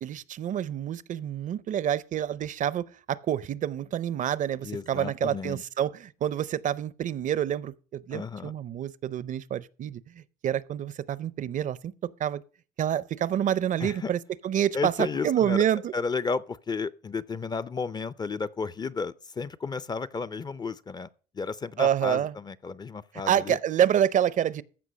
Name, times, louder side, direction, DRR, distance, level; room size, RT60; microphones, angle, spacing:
voice 1, 0.0-11.9 12.2-12.4 12.8-14.2 14.4-15.9 21.8-22.3 23.3-24.6, right 10 dB, 50° right, 0.6 m, -27 dB
voice 2, 4.6-5.6 8.1-8.5 13.8-14.1 14.7-15.6 15.9-21.1 21.3-23.6, left 4 dB, 25° left, 0.5 m, -33 dB
14.5 x 5.3 x 6.3 m
cardioid pair, 110°, 17 cm